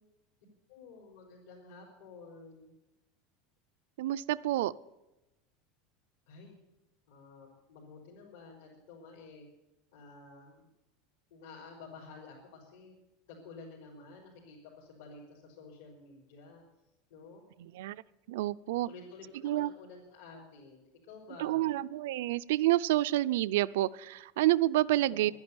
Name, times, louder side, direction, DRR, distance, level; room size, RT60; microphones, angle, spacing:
voice 1, 0.7-2.7 6.3-6.6 7.1-9.5 9.9-10.7 11.3-12.9 13.3-16.6 17.1-17.4 18.8-21.7 25.1-25.3, left 4 dB, 80° left, -4 dB, 4.2 m, -51 dB
voice 2, 4.0-4.7 17.6-18.0 18.3-18.9 19.4-19.7 21.4-25.3, right 15 dB, 80° right, 15 dB, 0.5 m, -29 dB
11.5 x 10.5 x 9.6 m, 0.98 s
supercardioid pair, 180°, 0 cm